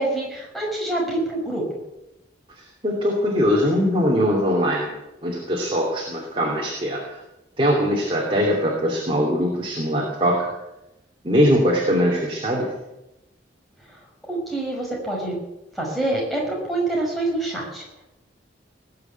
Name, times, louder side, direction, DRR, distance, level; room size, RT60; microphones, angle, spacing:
voice 1, 0.0-1.6 14.3-15.3 15.8-18.0, right 2 dB, ahead, -3 dB, 5.8 m, -26 dB
voice 2, 2.6-4.9 5.2-7.2 7.6-10.5 11.2-12.7, equal, 30° right, -2 dB, 2.9 m, -21 dB
19.5 x 6.9 x 9.3 m, 0.95 s
head